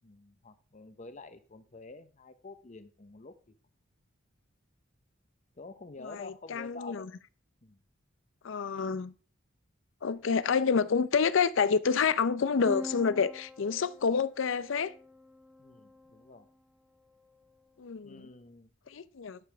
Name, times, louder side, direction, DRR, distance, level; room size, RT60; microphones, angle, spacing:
voice 1, 0.0-3.5 5.6-7.1 7.6-7.8 15.6-16.5 18.0-18.7, left 3 dB, 35° left, 0.8 m, -48 dB
voice 2, 6.0-7.1 8.4-9.1 10.0-14.9 17.8-18.3 18.9-19.4, left 5 dB, 65° left, 0.5 m, -28 dB
sound 1, 12.7-16.4, left 1 dB, 5° right, 0.8 m, -44 dB
12.5 x 6.9 x 3.4 m
head